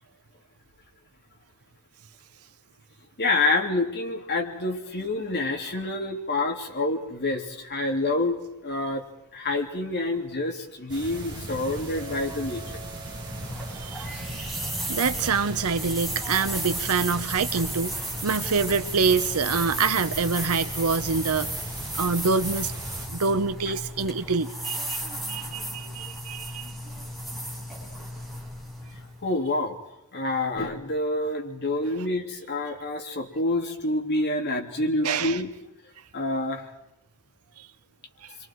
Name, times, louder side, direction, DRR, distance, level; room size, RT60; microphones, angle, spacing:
voice 1, 3.2-8.4 8.6-9.0 9.3-12.8 14.1-14.2 23.7-23.8 29.2-29.8 30.1-35.5 36.1-36.7, left 2 dB, 50° left, 2 dB, 3.0 m, -27 dB
sound 1, 10.9-23.1, right 2 dB, 20° right, 4.5 m, -38 dB
sound 2, 13.0-29.2, right 1 dB, ahead, 5.6 m, -34 dB
voice 2, 14.9-21.5 21.9-22.7 23.1-26.7 35.0-35.4 37.6-37.7, right 5 dB, 80° right, 11 dB, 0.9 m, -26 dB
30.0 x 23.5 x 4.7 m, 0.87 s
head